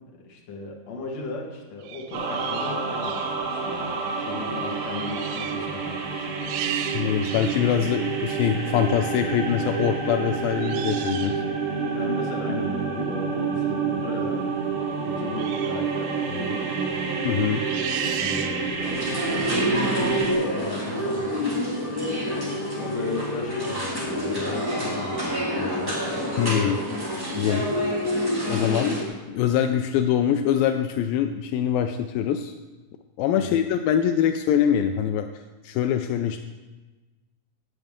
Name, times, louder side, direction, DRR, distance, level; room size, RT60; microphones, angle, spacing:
voice 1, 0.2-6.3 11.9-17.2 18.2-21.5 22.7-26.8 33.3-33.6, left 3 dB, 55° left, -1 dB, 2.3 m, -37 dB
sound 1, 1.8-3.4 4.1-4.3 4.6-5.7 6.1-7.7 8.4-8.6 10.6-11.5 15.4-15.8 16.2-16.5 17.5-18.9, right 10 dB, 85° right, 2.7 m, -35 dB
sound 2, 2.1-20.3, right 5 dB, 70° right, 3.4 m, -28 dB
voice 2, 6.9-11.4 17.2-17.7 26.4-26.8 27.4-27.7 28.5-32.5 33.2-35.3 35.6-36.4, left 9 dB, 85° left, 7 dB, 2.0 m, -24 dB
sound 3, 18.8-29.0, equal, 5° right, 2.0 m, -27 dB
16.0 x 8.1 x 3.7 m, 1.2 s
omnidirectional pair, 4.5 m